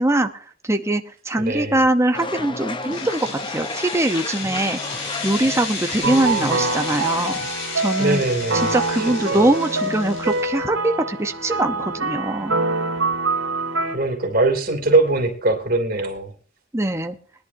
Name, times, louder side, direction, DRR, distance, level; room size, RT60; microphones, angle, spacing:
voice 1, 0.0-4.8 5.2-7.4 7.8-8.2 8.7-12.6 16.7-17.2, right 1 dB, 15° right, 6 dB, 0.8 m, -22 dB
voice 2, 1.3-1.8 6.0-6.7 8.0-9.5 13.8-16.3, right 2 dB, 45° right, 3 dB, 2.9 m, -22 dB
sound 1, 2.1-7.5, left 3 dB, 25° left, 0.9 m, -33 dB
sound 2, 2.7-10.6, left 4 dB, 70° left, 5.1 m, -33 dB
sound 3, 6.0-14.0, right 3 dB, 70° right, 3.2 m, -25 dB
21.0 x 11.0 x 2.7 m, 0.43 s
head